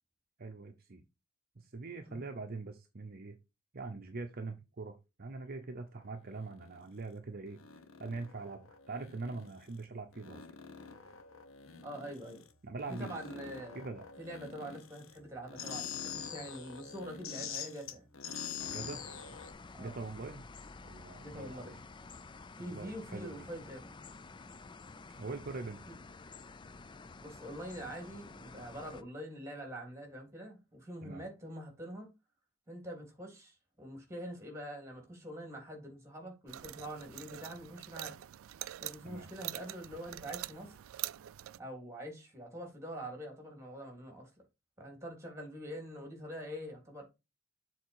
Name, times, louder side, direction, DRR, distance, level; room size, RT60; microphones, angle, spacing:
voice 1, 0.4-1.0 1.6-3.4 3.7-7.6 8.0-10.4 12.6-13.1 13.7-14.0 18.6-19.0 19.8-20.4 20.8-21.8 22.6-23.5 25.2-25.8 31.0-31.2 39.0-39.3, right 3 dB, 50° right, 0.8 m, -43 dB
sound 1, 6.4-6.8 7.5-9.8 10.1-12.5 12.8-15.2 15.5-19.5, left 7 dB, 75° left, 1.1 m, -45 dB
voice 2, 11.8-12.4 13.0-13.8 14.2-18.0 19.7-20.0 21.2-21.8 22.6-24.0 25.9-26.0 27.2-32.1 32.7-38.2 38.8-40.8 41.6-44.3 44.8-47.1, equal, 15° right, 3.3 m, -45 dB
sound 2, 18.6-29.0, left 3 dB, 25° left, 0.4 m, -51 dB
sound 3, 36.5-41.6, right 14 dB, 80° right, 0.4 m, -44 dB
7.3 x 4.1 x 4.6 m
head